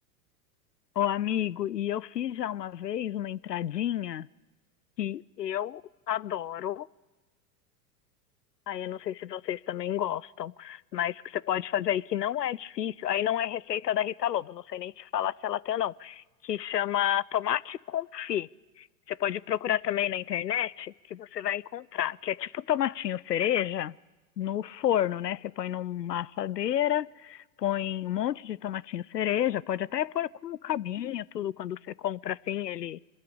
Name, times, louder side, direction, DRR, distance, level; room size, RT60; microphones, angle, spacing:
voice 1, 1.0-4.3 5.0-5.8 6.1-6.9 8.7-18.5 18.8-24.0 24.4-33.0, left 11 dB, 85° left, 0.6 m, -30 dB
24.5 x 13.5 x 8.7 m
figure-of-eight pair, 95°, 48 cm